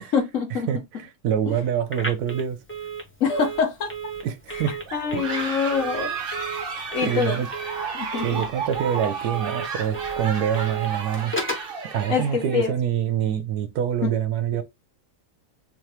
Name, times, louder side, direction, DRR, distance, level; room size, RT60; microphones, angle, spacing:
voice 1, 0.0-0.7 1.5-1.6 3.2-3.9 4.5-6.1 6.9-7.4 7.9-8.4 12.1-12.7 14.0-14.1, left 6 dB, 60° left, 1.0 m, -25 dB
voice 2, 0.7-2.6 4.2-4.8 5.1-5.3 7.0-7.5 8.2-11.3 11.8-14.6, right 9 dB, 70° right, 1.0 m, -25 dB
Telephone, 1.9-11.7, right 3 dB, 10° left, 0.7 m, -35 dB
sound 1, 4.9-12.7, right 5 dB, 50° right, 0.7 m, -32 dB
3.6 x 2.9 x 3.2 m
omnidirectional pair, 1.8 m